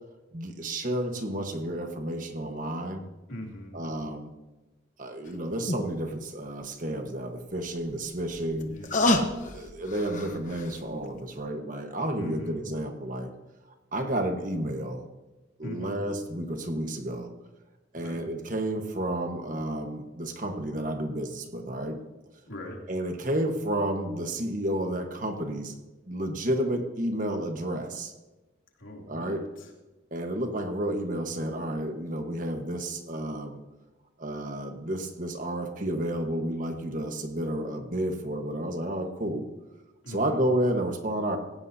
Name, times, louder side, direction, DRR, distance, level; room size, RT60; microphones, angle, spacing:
voice 1, 0.3-3.0 3.7-4.3 5.0-8.7 9.5-13.3 13.9-15.0 15.6-17.3 17.9-22.0 22.9-25.7 26.1-28.1 29.1-29.4 30.1-33.6 34.2-39.4 40.1-41.4, right 1 dB, 40° right, 5 dB, 1.4 m, -31 dB
voice 2, 3.3-3.8 8.5-9.4 12.2-12.6 15.6-16.0 17.9-18.3 22.5-22.8 28.8-29.7 40.0-40.4, left 1 dB, 90° left, -1 dB, 2.9 m, -41 dB
sound 1, 5.2-5.3 5.7-5.8 7.7-10.8 11.2-11.3, left 2 dB, 40° left, 1.1 m, -29 dB
17.5 x 16.5 x 2.8 m, 1.1 s
head